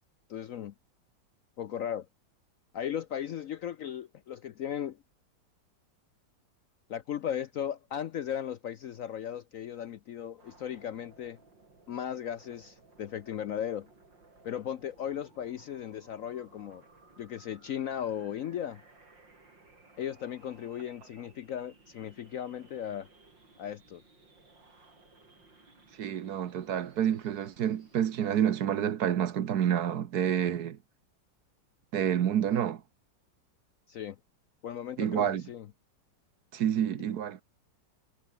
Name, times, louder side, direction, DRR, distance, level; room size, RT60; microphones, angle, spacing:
voice 1, 0.3-0.7 1.6-2.1 2.7-5.0 6.9-11.4 11.9-13.9 14.4-16.8 17.2-18.8 20.0-23.1 23.6-24.0 33.9-34.2 34.6-35.7, left 9 dB, 65° left, 0.9 m, -36 dB
sound 1, 10.3-28.3, right 3 dB, 85° right, 6.0 m, -59 dB
voice 2, 25.9-30.8 31.9-32.8 35.0-35.4 36.5-37.4, right 9 dB, 60° right, 1.4 m, -28 dB
omnidirectional pair, 2.0 m